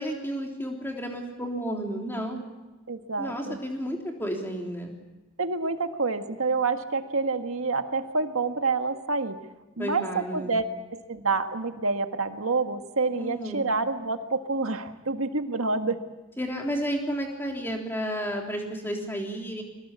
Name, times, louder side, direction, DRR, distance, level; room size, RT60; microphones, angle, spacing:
voice 1, 0.0-2.4 3.2-4.9 9.8-10.5 13.2-13.7 16.4-19.6, equal, 10° left, 1 dB, 3.5 m, -32 dB
voice 2, 2.9-3.6 5.4-9.4 9.8-10.7 10.9-16.0, right 3 dB, 80° right, 7 dB, 1.7 m, -28 dB
23.0 x 19.5 x 8.5 m, 1.1 s
head